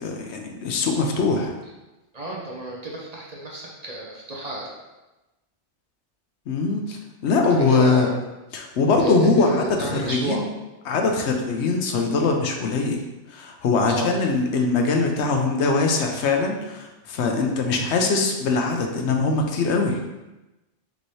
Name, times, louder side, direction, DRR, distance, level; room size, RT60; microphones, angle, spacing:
voice 1, 0.0-1.5 6.5-8.1 8.5-10.5 10.8-13.0 13.3-20.0, left 3 dB, 70° left, 3 dB, 0.9 m, -22 dB
voice 2, 2.1-4.7 7.5-8.1 9.0-10.4 13.9-14.1, right 1 dB, 40° right, -3 dB, 0.8 m, -31 dB
5.2 x 2.9 x 3.1 m, 1.0 s
omnidirectional pair, 1.2 m